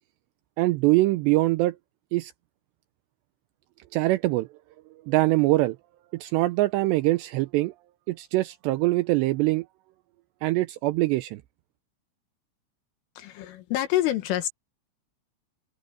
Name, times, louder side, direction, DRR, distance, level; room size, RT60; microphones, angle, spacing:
voice 1, 0.6-1.8 2.1-2.3 3.9-4.5 5.1-5.8 6.1-7.7 8.1-9.7 10.4-11.4, right 19 dB, 85° right, 2.6 m, -23 dB
voice 2, 13.2-14.5, left 13 dB, 85° left, 4.5 m, -27 dB
open air
omnidirectional pair, 5.6 m